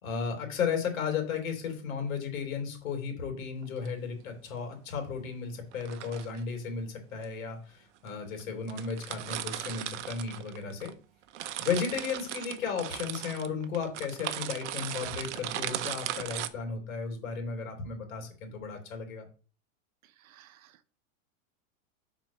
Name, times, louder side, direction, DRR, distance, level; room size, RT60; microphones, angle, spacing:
voice 1, 0.0-10.9 11.6-19.3, left 6 dB, 80° left, 3 dB, 3.6 m, -34 dB
sound 1, 3.6-3.9 5.7-6.4 7.2-7.3 8.1-8.2 8.4-8.5 8.7-10.9 11.2-16.5, right 12 dB, 60° right, 0.8 m, -37 dB
voice 2, 20.0-21.0, right 12 dB, 85° right, 12 dB, 1.0 m, -59 dB
6.5 x 4.5 x 6.3 m, 0.38 s
supercardioid pair, 175°, 40 cm